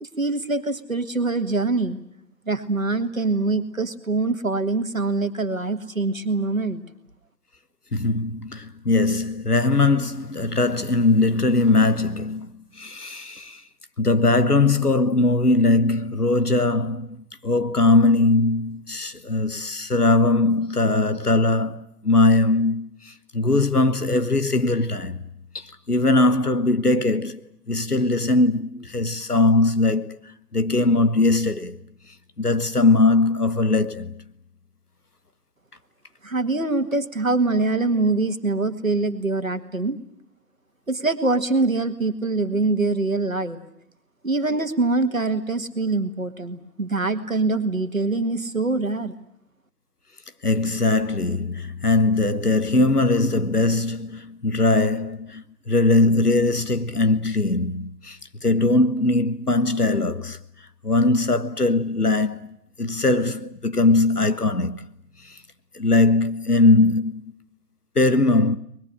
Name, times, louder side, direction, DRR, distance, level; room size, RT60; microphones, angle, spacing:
voice 1, 0.0-2.0 2.5-6.8 36.2-40.0 40.9-43.6 44.2-49.1, right 3 dB, 50° right, 2.0 m, -24 dB
voice 2, 7.9-12.5 12.8-13.6 14.0-17.2 17.4-25.2 25.5-31.8 32.4-34.1 50.4-60.4 60.8-62.5 62.8-64.9 65.7-67.2 67.9-68.6, left 2 dB, 65° left, 1.4 m, -20 dB
23.0 x 21.0 x 10.0 m
figure-of-eight pair, 170°, 50 cm